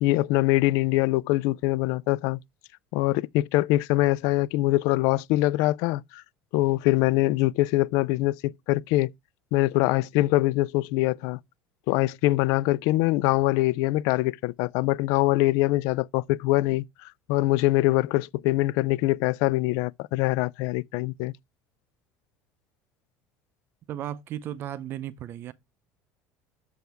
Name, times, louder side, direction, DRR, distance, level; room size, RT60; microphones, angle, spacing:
voice 1, 0.0-2.4 2.9-6.2 6.5-9.1 9.5-11.4 11.9-21.3, left 18 dB, 65° left, 0.4 m, -23 dB
voice 2, 23.9-25.5, right 11 dB, 40° right, 0.5 m, -35 dB
6.9 x 6.2 x 3.3 m
cardioid pair, 160°, 6 cm